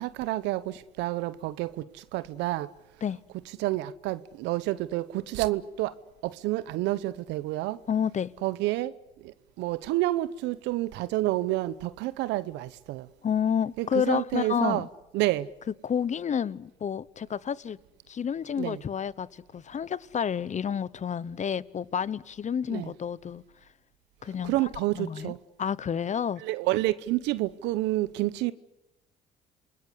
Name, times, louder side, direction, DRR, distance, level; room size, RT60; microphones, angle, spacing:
voice 1, 0.0-1.7 2.1-2.7 3.6-5.9 6.2-7.8 8.4-8.9 9.6-13.1 13.8-14.9 15.1-15.5 18.6-18.8 22.7-22.9 24.4-25.4 26.4-28.5, right 17 dB, 75° right, 0.9 m, -29 dB
voice 2, 7.9-8.3 13.2-14.9 15.8-17.8 18.1-23.4 24.2-24.5 25.0-25.3 25.6-26.4, left 7 dB, 40° left, 1.0 m, -29 dB
28.0 x 20.0 x 8.2 m
hypercardioid pair, 60°, 18 cm